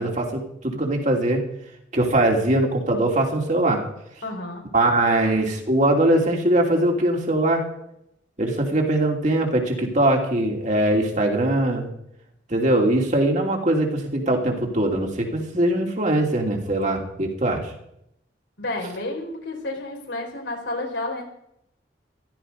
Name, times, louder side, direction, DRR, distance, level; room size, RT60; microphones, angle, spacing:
voice 1, 0.0-1.4 1.9-3.8 4.7-7.6 8.4-11.9 12.5-17.7, right 1 dB, 45° right, 1 dB, 3.1 m, -21 dB
voice 2, 4.2-4.7 18.6-21.3, left 2 dB, 90° left, 0 dB, 4.2 m, -30 dB
15.5 x 13.0 x 5.3 m, 0.77 s
head